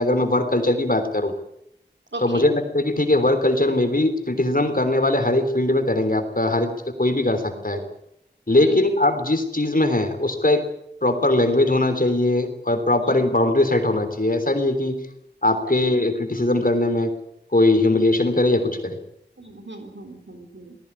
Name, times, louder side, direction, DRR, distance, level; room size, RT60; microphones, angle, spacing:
voice 1, 0.0-1.3 2.2-6.7 7.0-7.8 8.5-10.6 11.0-15.0 15.4-17.1 17.5-19.0, left 2 dB, 50° left, 7 dB, 3.5 m, -20 dB
voice 2, 2.1-2.4 8.6-8.8 13.0-13.2 15.8-16.0 19.4-20.8, right 2 dB, 85° right, 4 dB, 3.6 m, -37 dB
19.0 x 16.5 x 9.9 m, 0.78 s
wide cardioid pair, 40°, 18 cm